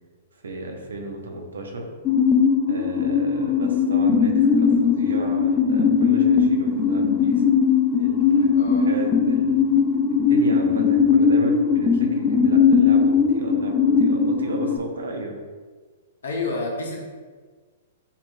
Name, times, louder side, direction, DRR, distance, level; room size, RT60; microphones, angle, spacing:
voice 1, 0.3-1.8 2.7-7.4 8.0-9.7 10.1-15.3, right 1 dB, 75° right, 3 dB, 0.8 m, -34 dB
sound 1, 2.1-14.8, left 6 dB, 30° left, 0.6 m, -19 dB
voice 2, 8.5-8.9 16.2-17.0, left 3 dB, 75° left, 0 dB, 0.8 m, -29 dB
6.9 x 2.9 x 2.3 m, 1.5 s
figure-of-eight pair, 110°, 0 cm